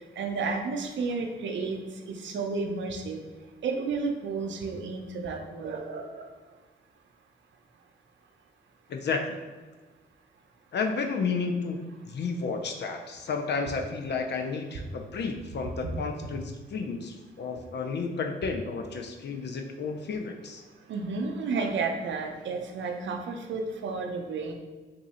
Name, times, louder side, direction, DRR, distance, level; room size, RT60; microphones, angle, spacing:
voice 1, 0.2-1.8 2.1-3.2 3.6-6.3 15.8-16.4 20.9-24.5, right 4 dB, 75° right, 4 dB, 0.6 m, -32 dB
voice 2, 8.9-9.4 10.7-16.4 16.7-20.6, left 4 dB, 60° left, 4 dB, 0.5 m, -32 dB
3.6 x 2.6 x 4.2 m, 1.3 s
cardioid pair, 70°, 20 cm